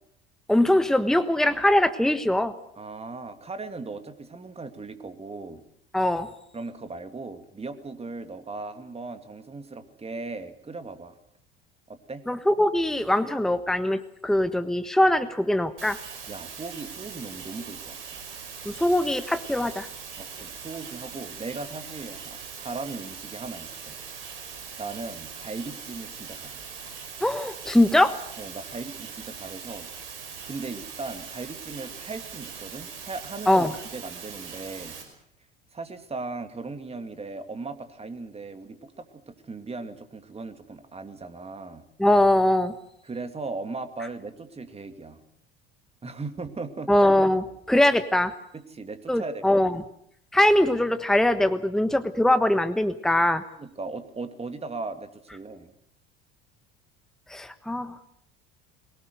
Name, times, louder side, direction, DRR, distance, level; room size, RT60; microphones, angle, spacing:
voice 1, 0.5-2.5 5.9-6.3 12.3-16.0 18.6-19.9 27.2-28.1 33.5-33.7 42.0-42.7 46.9-48.3 49.1-49.7 50.3-53.4 57.3-58.0, left 1 dB, ahead, 11 dB, 1.2 m, -22 dB
voice 2, 2.8-5.6 6.5-11.2 11.9-12.2 16.3-18.2 20.2-24.0 24.8-26.6 28.4-29.9 30.4-35.0 35.7-41.8 43.0-45.2 46.0-46.9 48.5-49.7 53.6-55.7, right 3 dB, 20° right, 9 dB, 2.6 m, -38 dB
sound 1, 15.8-35.0, right 6 dB, 75° right, 5.6 m, -41 dB
22.5 x 19.0 x 8.0 m, 0.70 s
hypercardioid pair, 70°, 29 cm